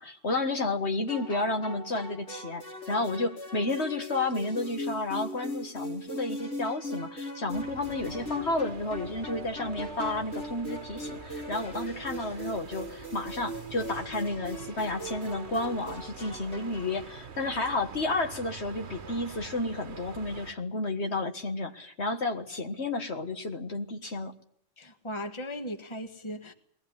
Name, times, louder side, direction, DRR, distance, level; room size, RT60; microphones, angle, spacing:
voice 1, 0.0-24.3, left 2 dB, 60° left, 1.9 m, -31 dB
sound 1, 1.1-17.0, equal, 85° left, 4.0 m, -39 dB
sound 2, 7.5-20.5, right 6 dB, 60° right, 1.4 m, -46 dB
voice 2, 24.8-26.5, equal, 25° left, 1.7 m, -37 dB
21.5 x 18.0 x 9.6 m
omnidirectional pair, 1.3 m